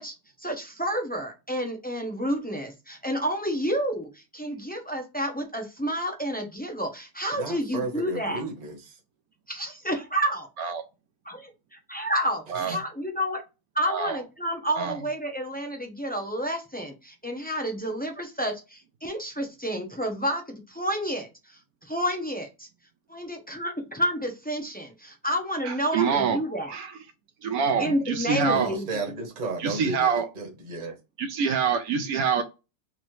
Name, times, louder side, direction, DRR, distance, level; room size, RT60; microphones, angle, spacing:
voice 1, 0.0-8.4 9.5-10.5 11.3-13.4 13.7-22.7 23.1-26.7 27.8-29.0, equal, 15° left, 0.4 m, -30 dB
voice 2, 7.4-9.0 28.4-31.0, right 2 dB, 30° right, 1.0 m, -34 dB
voice 3, 13.9-14.2 14.8-15.0 25.6-26.4 26.7-26.9 27.4-28.7 29.6-30.3 31.2-32.4, right 6 dB, 70° right, 1.0 m, -26 dB
4.0 x 2.6 x 3.1 m
omnidirectional pair, 1.7 m